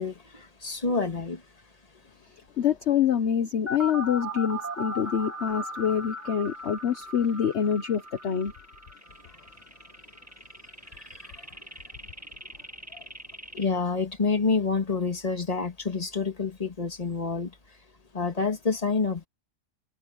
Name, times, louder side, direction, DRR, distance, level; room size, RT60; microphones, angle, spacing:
voice 1, 0.0-1.4 13.5-17.5 18.1-19.3, left 4 dB, 30° left, 1.9 m, -28 dB
voice 2, 2.6-8.5 12.9-13.0, left 8 dB, 55° left, 1.1 m, -26 dB
sound 1, 3.7-13.7, equal, 10° right, 2.1 m, -38 dB
omnidirectional pair, 1.4 m